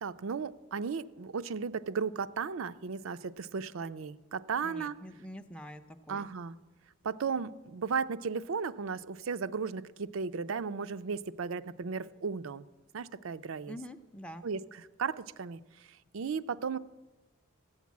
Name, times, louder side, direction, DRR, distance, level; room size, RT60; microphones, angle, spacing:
voice 1, 0.0-5.0 6.1-6.6 7.0-12.6 12.9-13.8 14.4-16.8, right 5 dB, 75° right, 12 dB, 0.5 m, -35 dB
voice 2, 4.6-6.3 13.7-14.4, equal, 5° left, 5 dB, 0.6 m, -46 dB
15.0 x 7.3 x 9.4 m, 1.1 s
head